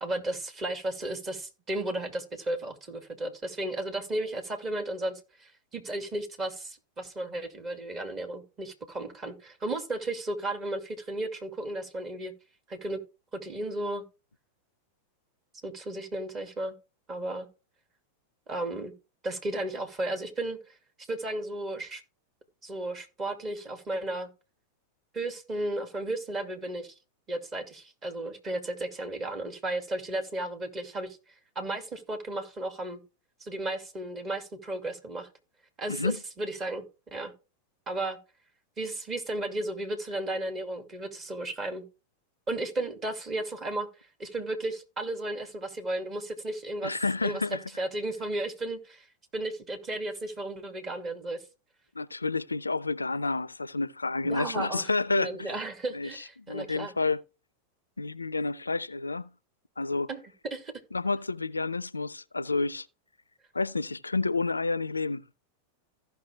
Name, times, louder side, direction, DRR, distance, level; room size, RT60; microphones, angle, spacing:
voice 1, 0.0-12.3 12.7-13.0 13.3-14.0 15.6-16.7 17.1-17.5 18.5-18.9 19.2-20.7 21.1-22.0 22.6-24.3 25.1-26.9 27.3-31.2 31.6-33.0 33.4-35.3 35.8-36.8 37.1-37.3 37.9-38.2 38.8-41.8 42.5-43.9 44.2-47.0 47.2-49.1 49.3-51.4 54.2-54.9 55.1-56.9 60.1-60.2 60.4-60.7, right 1 dB, 25° right, 2.3 m, -34 dB
voice 2, 35.9-36.2 46.8-47.6 52.0-55.5 55.9-57.2 58.0-59.3 59.8-60.1 60.9-62.9 63.5-65.2, left 3 dB, 80° left, 0.4 m, -30 dB
15.0 x 5.9 x 3.4 m
figure-of-eight pair, 90°, 0 cm